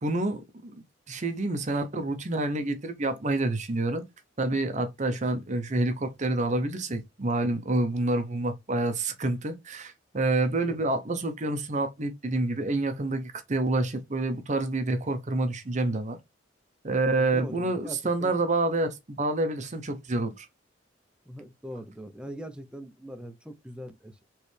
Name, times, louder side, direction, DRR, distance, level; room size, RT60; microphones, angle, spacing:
voice 1, 0.0-0.7 1.1-4.0 4.4-16.2 16.8-20.5, right 2 dB, 40° right, 0.7 m, -28 dB
voice 2, 5.1-5.4 10.7-10.8 17.1-18.3 21.3-24.2, equal, 5° right, 0.6 m, -42 dB
4.6 x 3.2 x 3.2 m
head